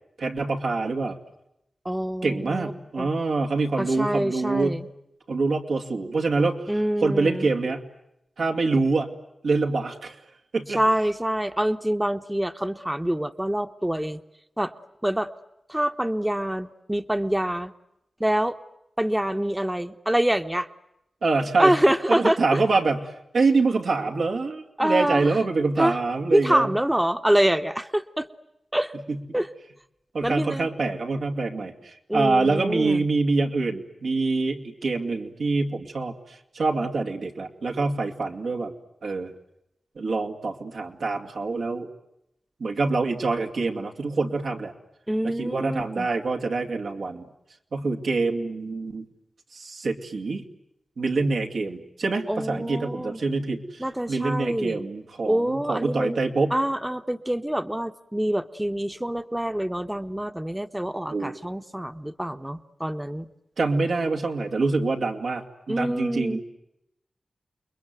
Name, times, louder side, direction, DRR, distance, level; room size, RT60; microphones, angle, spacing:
voice 1, 0.2-1.2 2.2-4.8 5.3-6.7 7.0-7.8 8.4-9.1 9.4-10.2 10.5-10.8 21.2-21.8 22.1-26.7 29.1-29.2 30.1-38.7 39.0-39.3 40.0-41.9 42.6-44.7 45.2-47.2 47.7-49.1 49.5-50.4 51.0-53.8 54.1-56.5 61.1-61.3 63.6-66.4, right 3 dB, 85° right, 2 dB, 2.5 m, -25 dB
voice 2, 1.8-2.7 3.0-3.1 3.8-4.9 6.7-7.5 10.7-14.2 14.6-14.7 15.0-15.3 15.7-17.7 18.2-18.6 19.0-20.7 21.6-22.6 24.8-25.4 25.8-26.0 26.3-28.3 28.7-28.9 29.3-29.5 30.2-30.7 32.1-33.0 45.1-46.1 52.3-53.2 53.8-54.9 55.2-56.2 56.5-63.3 65.7-66.4, right 1 dB, 10° right, 9 dB, 1.1 m, -25 dB
29.0 x 21.5 x 9.3 m, 0.83 s
cardioid pair, 45°, 0 cm